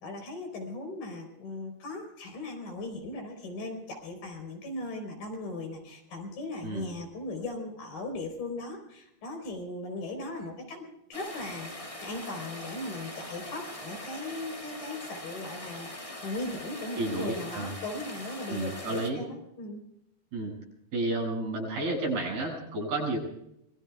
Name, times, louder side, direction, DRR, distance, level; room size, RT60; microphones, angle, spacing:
voice 1, 0.0-19.8, left 2 dB, 65° left, 3 dB, 5.9 m, -38 dB
sound 1, 11.1-19.1, left 1 dB, 15° left, 1.1 m, -42 dB
voice 2, 17.0-17.7 18.5-19.2 20.3-20.5 20.9-23.2, right 2 dB, 70° right, 0 dB, 8.9 m, -31 dB
26.0 x 22.5 x 2.4 m, 0.80 s
omnidirectional pair, 4.5 m